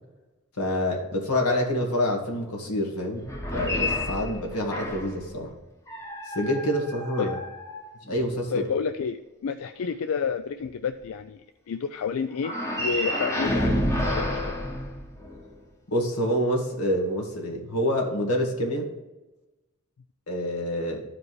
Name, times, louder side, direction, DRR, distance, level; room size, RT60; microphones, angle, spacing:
voice 1, 0.6-3.3 3.5-5.5 6.3-7.4 8.0-8.6 15.9-18.9 20.3-21.0, equal, 90° left, 0 dB, 1.9 m, -27 dB
sound 1, 3.2-5.2 5.9-8.3 12.4-15.5, left 1 dB, 15° left, 0.9 m, -30 dB
voice 2, 8.5-11.4 11.7-14.5, left 6 dB, 65° left, 10 dB, 0.4 m, -30 dB
13.0 x 5.0 x 3.2 m, 1.1 s
head